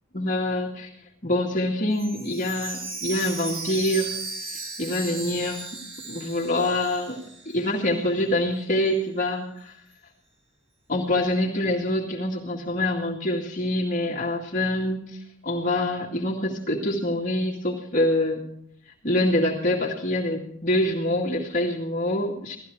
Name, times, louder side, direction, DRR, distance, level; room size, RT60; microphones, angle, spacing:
voice 1, 0.1-0.9 1.2-4.2 4.5-5.6 6.1-7.2 7.5-9.8 10.9-18.5 19.0-22.6, left 1 dB, 40° left, -3 dB, 2.2 m, -25 dB
Chime, 1.9-7.9 8.2-8.3 8.9-9.0, right 3 dB, 65° right, 7.7 m, -36 dB
17.5 x 14.0 x 4.9 m, 0.70 s
head